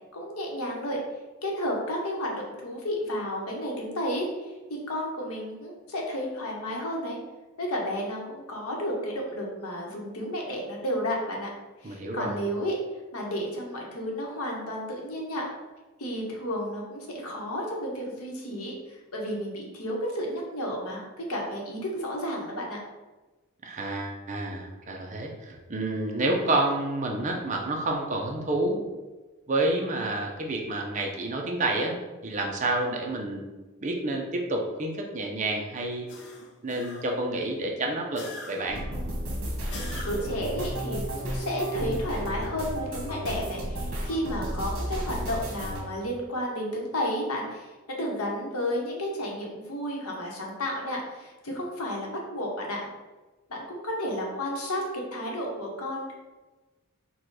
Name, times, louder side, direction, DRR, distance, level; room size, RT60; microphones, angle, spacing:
voice 1, 0.1-1.0 1.4-7.2 7.6-11.5 11.8-12.7 13.1-15.4 16.0-22.8 40.0-52.8 53.5-56.1, equal, 80° left, -1 dB, 1.0 m, -32 dB
voice 2, 11.8-12.4 23.6-28.8 29.5-32.0 32.2-33.4 33.8-36.1 36.6-38.8, right 2 dB, 35° right, 1 dB, 0.5 m, -29 dB
sound 1, 36.1-37.3 38.1-38.9 39.7-40.5, left 1 dB, 50° left, 0.6 m, -41 dB
sound 2, 38.7-45.8, equal, 60° right, 1.2 m, -33 dB
4.3 x 2.3 x 4.6 m, 1.2 s
head